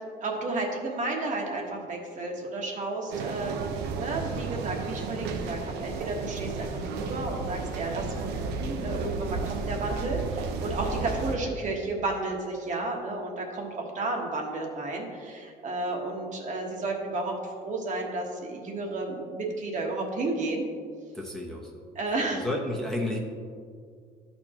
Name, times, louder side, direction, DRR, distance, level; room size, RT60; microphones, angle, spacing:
voice 1, 0.2-3.7 4.0-8.3 8.6-20.7 21.9-22.4, right 2 dB, 50° right, 0 dB, 1.2 m, -32 dB
sound 1, 3.1-11.4, right 4 dB, 85° right, 0.6 m, -33 dB
voice 2, 21.1-21.7 22.3-23.2, left 1 dB, 5° left, -2 dB, 0.9 m, -31 dB
12.0 x 4.4 x 2.9 m, 2.2 s
cardioid pair, 110°, 17 cm